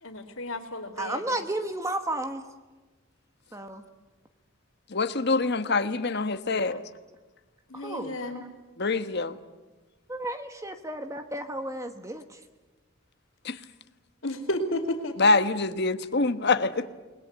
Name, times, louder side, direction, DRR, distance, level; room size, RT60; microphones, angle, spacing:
voice 1, 0.0-1.4 7.7-8.4 14.2-15.1, left 1 dB, 80° left, 2.9 m, -32 dB
voice 2, 0.9-2.4 3.5-3.8 7.7-8.5 10.1-12.4, right 1 dB, 15° right, 1.2 m, -33 dB
voice 3, 4.9-6.8 8.8-9.3 13.4-13.6 15.2-16.8, left 3 dB, 55° left, 1.3 m, -25 dB
29.0 x 20.5 x 8.0 m
head